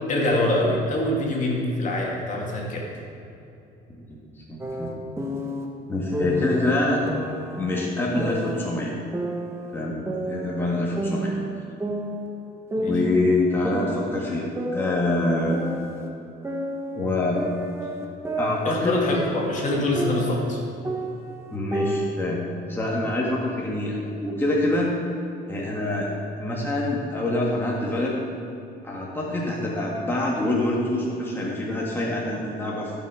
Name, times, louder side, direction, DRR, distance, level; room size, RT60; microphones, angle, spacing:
voice 1, 0.1-2.9 12.7-12.9 18.6-20.6, left 1 dB, 50° left, -2 dB, 2.6 m, -24 dB
voice 2, 4.5-4.9 5.9-7.0 7.6-8.9 9.7-10.0 10.3-11.3 12.8-15.6 17.0-17.4 18.4-19.0 21.5-24.9 25.5-26.1 26.4-28.2 28.8-32.9, left 2 dB, 15° left, -4 dB, 1.9 m, -25 dB
sound 1, 4.6-5.6 6.1-6.6 7.1-8.7 9.1-10.7 11.0-12.5 12.7-13.2 13.6-16.1 16.4-20.5 20.8-22.2, right 1 dB, 15° right, 1.3 m, -31 dB
15.5 x 6.5 x 4.9 m, 2.7 s
cardioid pair, 110°, 17 cm